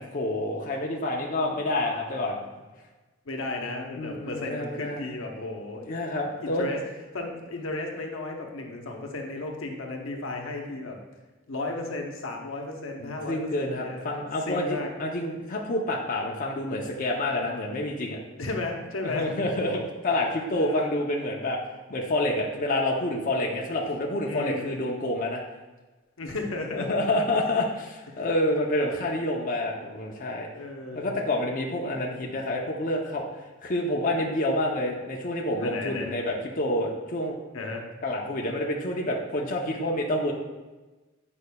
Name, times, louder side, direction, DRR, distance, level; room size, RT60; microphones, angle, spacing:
voice 1, 0.0-2.4 4.0-5.0 5.9-6.7 13.0-18.2 19.0-21.6 21.9-25.4 26.7-30.5 30.9-33.2 33.6-37.4 38.0-40.3, left 1 dB, 45° left, -1 dB, 0.6 m, -28 dB
voice 2, 3.2-5.8 6.4-6.8 7.1-11.0 11.5-14.0 14.4-14.9 18.4-19.3 20.5-20.9 24.3-24.7 26.2-27.2 28.1-28.2 30.5-31.3 35.6-36.1 37.5-37.9, left 2 dB, 80° left, 2 dB, 0.9 m, -34 dB
8.3 x 5.3 x 2.2 m, 1.2 s
head